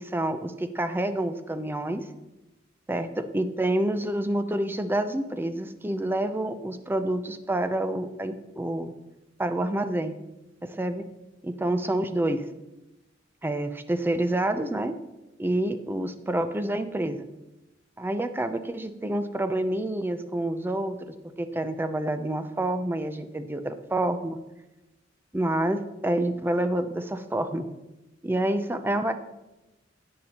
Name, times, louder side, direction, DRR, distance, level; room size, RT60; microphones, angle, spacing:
voice 1, 0.0-2.0 2.9-8.9 9.4-10.1 10.6-11.1 11.4-12.5 13.4-14.9 15.4-17.3 18.0-21.0 21.4-24.4 25.3-27.7 28.2-29.1, right 1 dB, 10° right, 8 dB, 0.5 m, -28 dB
10.5 x 8.4 x 2.9 m, 1.0 s
head